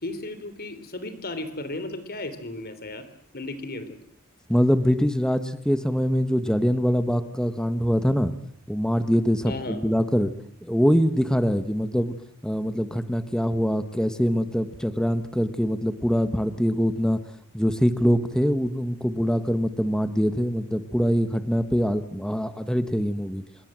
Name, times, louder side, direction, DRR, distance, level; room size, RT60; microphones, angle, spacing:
voice 1, 0.0-3.1 3.3-4.0 9.5-9.8, left 2 dB, 45° left, 12 dB, 3.5 m, -34 dB
voice 2, 4.5-8.3 8.7-10.3 10.6-12.1 12.4-17.2 17.5-23.4, equal, 5° left, 11 dB, 1.5 m, -23 dB
27.0 x 22.0 x 7.6 m, 0.66 s
head